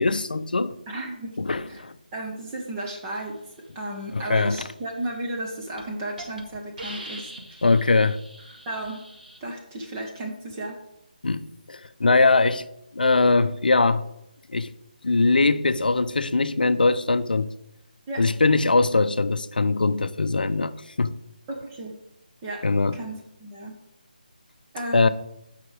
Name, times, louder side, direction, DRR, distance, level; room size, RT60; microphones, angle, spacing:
voice 1, 0.0-0.8 1.4-1.9 4.1-4.6 7.6-8.2 11.2-12.6 12.9-14.0 14.5-14.7 15.0-17.5 18.2-20.7 21.0-21.2 22.6-23.0 24.9-25.1, left 3 dB, 70° left, 0.6 m, -21 dB
voice 2, 0.9-1.4 1.7-1.8 2.1-7.6 8.7-9.0 9.4-10.8 18.1-18.3 21.5-21.9 22.4-22.7 22.9-23.7 24.7-25.1, right 1 dB, 20° right, 1.2 m, -34 dB
Hiss, 5.2-5.4 5.8-5.9 6.2-6.4 6.8-9.4, right 1 dB, 75° right, 2.0 m, -41 dB
14.0 x 5.7 x 3.4 m
figure-of-eight pair, 155°, 5 cm